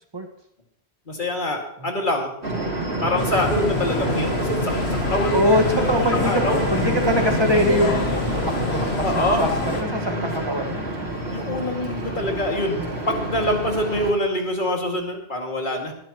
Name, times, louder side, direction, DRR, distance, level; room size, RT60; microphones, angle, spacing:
voice 1, 1.1-2.3 3.0-5.4 5.8-6.6 9.0-9.4 11.3-15.9, left 1 dB, 50° left, 1 dB, 2.4 m, -25 dB
sound 1, 2.4-14.1, right 1 dB, 75° right, 2.7 m, -28 dB
sound 2, 3.2-9.8, left 3 dB, 70° left, 1.5 m, -27 dB
voice 2, 5.3-6.5 6.7-8.1 8.3-10.9, equal, 25° right, 3 dB, 1.6 m, -23 dB
21.0 x 11.0 x 3.1 m, 0.74 s
omnidirectional pair, 1.1 m